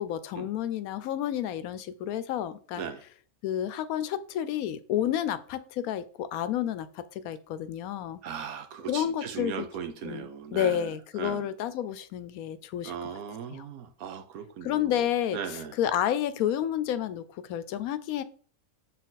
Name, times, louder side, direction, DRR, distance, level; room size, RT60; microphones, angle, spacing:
voice 1, 0.0-2.8 3.4-8.2 8.9-9.7 10.0-13.1 13.5-13.6 14.6-18.2, left 10 dB, 85° left, 1.1 m, -30 dB
voice 2, 8.2-11.5 12.8-15.1 15.3-15.8, right 7 dB, 85° right, 1.3 m, -38 dB
6.4 x 4.2 x 4.0 m
omnidirectional pair, 1.5 m